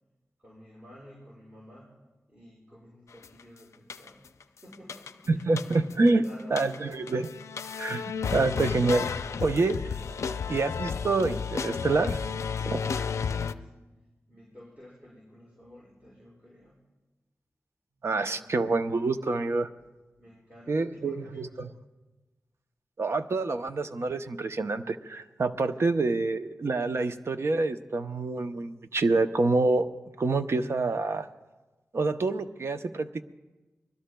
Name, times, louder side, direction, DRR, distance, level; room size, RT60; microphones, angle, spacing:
voice 1, 0.4-1.9 2.3-5.5 6.0-7.1 12.8-13.7 14.3-16.8 17.9-18.6 20.2-21.8 25.7-25.9, equal, 30° right, -6 dB, 6.0 m, -52 dB
sound 1, 3.2-3.4 3.9-4.4 4.7-6.1 6.4-13.5, left 6 dB, 85° left, 0.4 m, -32 dB
voice 2, 5.3-6.2 6.5-7.3 7.8-9.1 9.4-9.8 10.5-12.2 12.6-12.8 18.0-19.7 20.7-21.7 23.0-29.9 30.2-31.3 31.9-33.2, right 3 dB, 60° right, 9 dB, 0.7 m, -27 dB
24.5 x 20.5 x 2.3 m, 1.2 s
cardioid pair, 55°, 5 cm